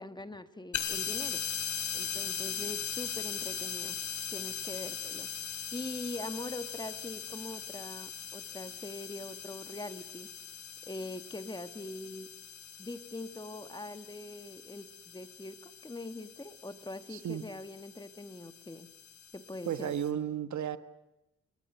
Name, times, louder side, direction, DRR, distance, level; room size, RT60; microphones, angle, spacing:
voice 1, 0.0-1.4 1.9-4.0 4.3-5.3 5.7-10.3 10.8-12.3 12.8-18.9 19.3-19.9, left 2 dB, 15° left, 10 dB, 1.4 m, -42 dB
sound 1, 0.7-20.1, left 8 dB, 75° left, 3.1 m, -40 dB
voice 2, 17.1-17.4 19.6-20.8, right 9 dB, 70° right, 12 dB, 1.3 m, -33 dB
29.5 x 21.0 x 7.9 m, 0.95 s
cardioid pair, 110°, 30 cm